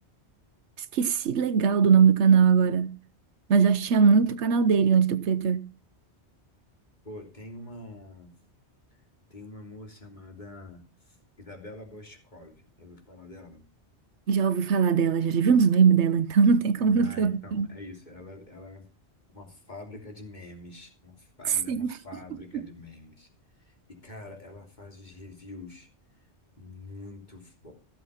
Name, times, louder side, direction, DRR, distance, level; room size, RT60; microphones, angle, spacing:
voice 1, 0.9-3.0 3.5-5.7 14.3-17.7 21.7-21.9 22.5-22.6, right 6 dB, 80° right, 1.1 m, -21 dB
voice 2, 7.0-8.3 8.9-9.0 9.3-13.7 16.8-18.9 19.3-25.9 26.6-27.7, left 2 dB, 40° left, 3.3 m, -46 dB
16.0 x 7.2 x 5.7 m
omnidirectional pair, 1.1 m